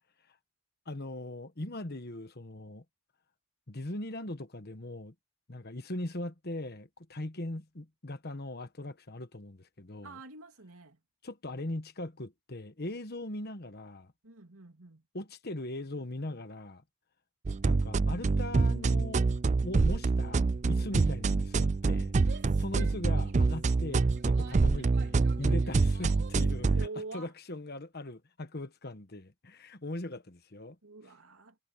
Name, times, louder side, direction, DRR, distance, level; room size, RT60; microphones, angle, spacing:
voice 1, 0.9-2.8 3.7-5.1 5.5-10.2 11.2-14.1 15.1-16.8 17.6-19.3 19.6-22.1 22.6-30.8, left 1 dB, 45° left, 1.3 m, -40 dB
voice 2, 10.0-11.0 14.2-15.0 26.7-27.3 30.8-31.6, right 3 dB, 75° right, 3.0 m, -45 dB
sound 1, 17.5-26.9, right 3 dB, 30° right, 0.4 m, -26 dB
Female speech woman speaking / Yell, 22.1-26.5, right 4 dB, 50° right, 3.5 m, -51 dB
head